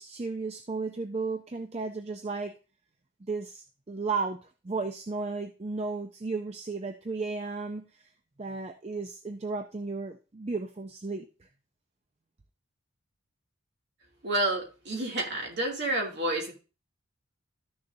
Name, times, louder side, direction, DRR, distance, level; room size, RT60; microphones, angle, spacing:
voice 1, 0.0-2.5 3.2-8.1 8.4-11.5, right 4 dB, 30° right, 6 dB, 0.5 m, -34 dB
voice 2, 14.2-16.5, right 1 dB, 50° right, -1 dB, 2.6 m, -29 dB
13.5 x 6.6 x 2.7 m, 0.32 s
head